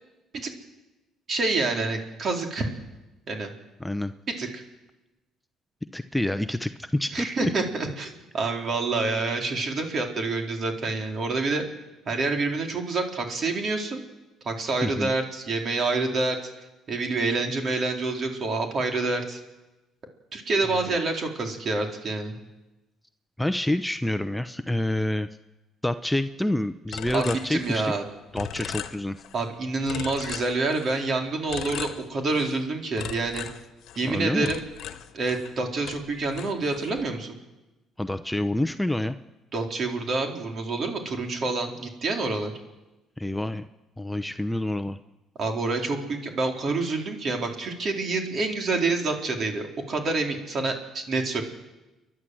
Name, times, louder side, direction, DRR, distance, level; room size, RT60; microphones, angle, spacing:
voice 1, 1.3-2.7 3.3-3.5 4.4-4.6 7.1-11.6 12.1-14.0 14.4-16.4 16.9-19.4 20.3-22.3 27.1-28.0 29.3-33.5 34.0-34.6 35.1-37.4 39.5-42.5 45.4-51.4, right 3 dB, 50° right, 3 dB, 4.0 m, -27 dB
voice 2, 3.8-4.1 5.9-7.5 14.8-15.1 20.9-21.0 23.4-25.3 25.8-27.9 28.3-29.2 34.1-34.5 38.0-39.1 43.2-43.7 44.0-45.0, left 1 dB, 5° left, 10 dB, 0.8 m, -27 dB
sound 1, 26.9-28.1 28.3-29.5 29.8-31.0 31.5-32.6 33.0-35.6 35.8-37.0, left 10 dB, 70° left, 1.2 m, -38 dB
30.0 x 11.5 x 7.8 m, 1.1 s
cardioid pair, 85°, 0 cm